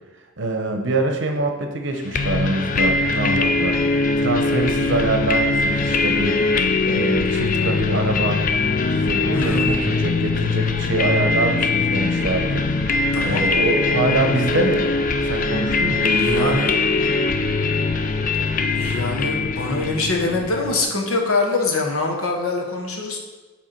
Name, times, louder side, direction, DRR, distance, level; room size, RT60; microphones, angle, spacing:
voice 1, 0.4-3.8 4.2-6.4 6.8-8.4 8.9-12.7 13.2-14.9 15.2-16.7, right 2 dB, 55° right, 4 dB, 0.7 m, -24 dB
sound 1, 2.1-20.8, left 3 dB, 40° left, 0.3 m, -21 dB
voice 2, 9.3-9.8 13.1-13.5 16.1-16.7 18.7-23.2, left 3 dB, 85° left, 0 dB, 1.1 m, -24 dB
7.6 x 3.5 x 4.4 m, 1.3 s
head